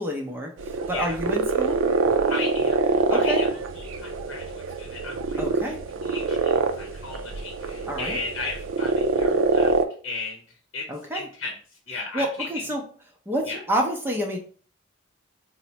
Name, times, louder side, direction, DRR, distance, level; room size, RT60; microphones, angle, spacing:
voice 1, 0.0-1.8 3.1-3.4 5.4-5.8 7.9-8.2 10.9-11.3 12.1-12.8 13.3-14.4, equal, 10° right, 0 dB, 0.5 m, -28 dB
sound 1, 0.6-9.8, right 4 dB, 70° right, 0.4 m, -25 dB
voice 2, 2.3-3.5 3.7-5.7 6.0-10.4 10.7-10.9 11.1-11.5 11.9-12.6 13.5-13.6, left 3 dB, 80° left, 0 dB, 0.7 m, -35 dB
4.2 x 2.1 x 2.8 m, 0.43 s
head